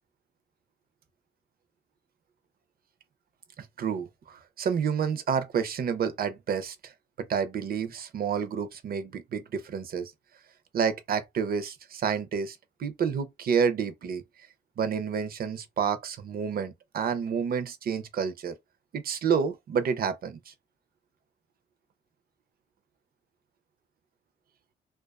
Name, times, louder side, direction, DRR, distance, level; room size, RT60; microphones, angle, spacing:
voice 1, 3.6-6.9 7.2-10.1 10.7-14.2 14.8-18.5 18.9-20.5, right 7 dB, 50° right, 0.5 m, -29 dB
2.4 x 2.2 x 2.3 m
cardioid pair, 90°, 20 cm